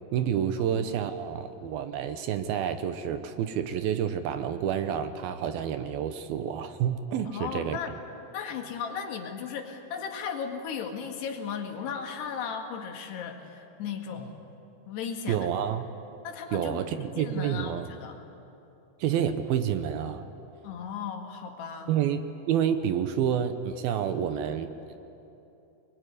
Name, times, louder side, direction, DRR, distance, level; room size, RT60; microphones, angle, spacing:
voice 1, 0.1-7.8 15.3-15.9 16.5-17.9 19.0-20.3 21.9-24.7, right 9 dB, 75° right, 9 dB, 2.6 m, -29 dB
voice 2, 7.3-7.9 8.3-14.4 14.9-15.5 16.2-18.2 20.6-21.9, left 7 dB, 80° left, 3 dB, 4.0 m, -36 dB
24.0 x 21.5 x 9.8 m, 2.9 s
omnidirectional pair, 4.8 m